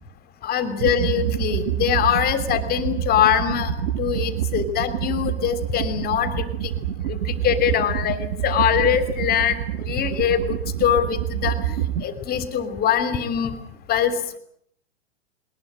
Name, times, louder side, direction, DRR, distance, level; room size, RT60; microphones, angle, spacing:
voice 1, 0.4-3.7 4.0-6.7 7.1-13.5 13.9-14.2, left 9 dB, 25° left, 12 dB, 3.2 m, -23 dB
sound 1, 0.8-12.0, right 11 dB, 65° right, 1.5 m, -27 dB
21.0 x 20.5 x 8.9 m, 0.66 s
hypercardioid pair, 120°, 34 cm